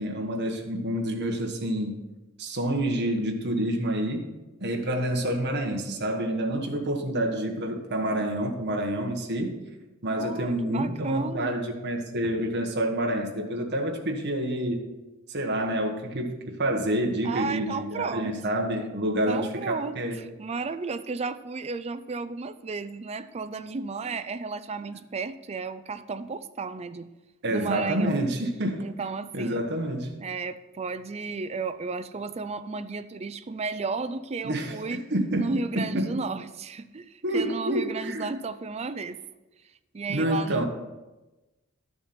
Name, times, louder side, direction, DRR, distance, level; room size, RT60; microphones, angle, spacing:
voice 1, 0.0-1.9 2.4-4.3 4.6-9.6 10.0-14.8 15.3-20.2 27.4-28.9 29.3-30.1 34.4-36.2 37.2-38.3 40.1-40.7, right 1 dB, 50° right, 3 dB, 1.4 m, -28 dB
voice 2, 10.2-11.6 17.2-18.3 19.3-27.1 27.5-28.3 28.8-29.7 30.2-35.1 35.4-39.2 39.9-40.6, right 4 dB, 30° right, 11 dB, 0.4 m, -33 dB
12.5 x 6.9 x 4.4 m, 1.1 s
head